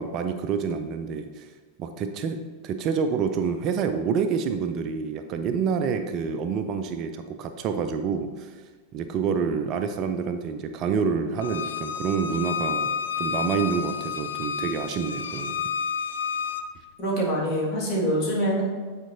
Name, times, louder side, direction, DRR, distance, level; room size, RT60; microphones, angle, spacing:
voice 1, 0.0-1.5 1.8-8.6 8.9-15.6, right 6 dB, 35° right, 8 dB, 0.4 m, -28 dB
Bowed string instrument, 11.4-16.6, left 7 dB, 65° left, 0.4 m, -30 dB
voice 2, 17.0-18.6, equal, 40° left, -3 dB, 1.8 m, -25 dB
8.8 x 4.4 x 2.7 m, 1.4 s
figure-of-eight pair, 90°, 0 cm